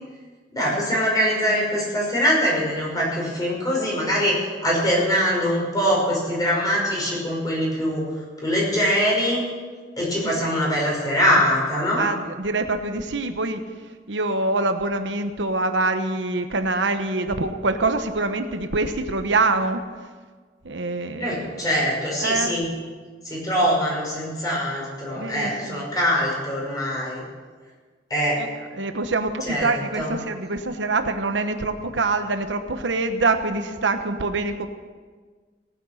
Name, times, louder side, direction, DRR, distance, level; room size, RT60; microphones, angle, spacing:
voice 1, 0.5-8.0 8.4-9.4 10.0-12.0 21.2-22.7 23.2-27.2 28.1-28.4 29.5-30.2, equal, 20° left, -4 dB, 5.5 m, -23 dB
voice 2, 12.0-13.6 14.1-19.8 20.6-21.6 22.2-22.6 25.2-25.8 28.4-28.5 28.7-34.7, right 3 dB, 85° right, 7 dB, 1.1 m, -25 dB
18.0 x 9.9 x 6.5 m, 1.5 s
head